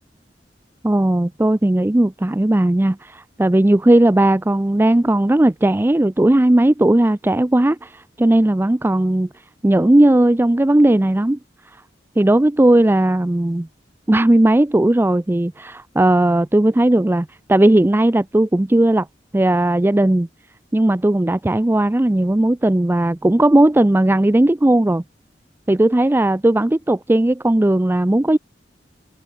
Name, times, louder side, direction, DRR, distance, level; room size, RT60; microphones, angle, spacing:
voice 1, 0.8-9.3 9.6-11.4 12.2-13.7 14.1-19.1 19.3-20.3 20.7-25.0 25.7-28.4, right 1 dB, 15° right, 0.4 m, -16 dB
head